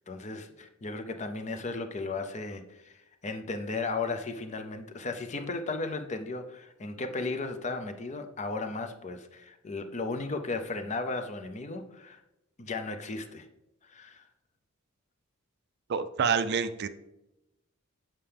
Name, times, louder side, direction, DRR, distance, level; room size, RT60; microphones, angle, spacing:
voice 1, 0.0-12.2 12.6-13.5 13.8-14.3, left 3 dB, 35° left, 7 dB, 0.6 m, -35 dB
voice 2, 15.9-16.9, right 6 dB, 50° right, 12 dB, 0.4 m, -27 dB
7.4 x 5.6 x 3.4 m, 0.93 s
head